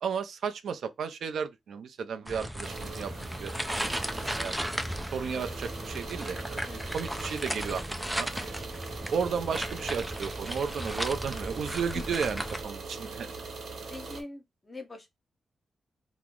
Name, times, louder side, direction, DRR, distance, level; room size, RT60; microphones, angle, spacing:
voice 1, 0.0-4.6 5.1-6.6 6.9-8.3 9.1-13.3, right 6 dB, 75° right, 0.5 m, -34 dB
sound 1, 2.3-12.6, equal, 5° right, 0.4 m, -36 dB
sound 2, 2.6-14.2, right 4 dB, 60° right, 1.0 m, -41 dB
voice 2, 6.6-7.0 11.9-12.1 13.7-15.1, left 2 dB, 20° left, 0.8 m, -43 dB
3.0 x 2.0 x 3.6 m
wide cardioid pair, 140°, 0 cm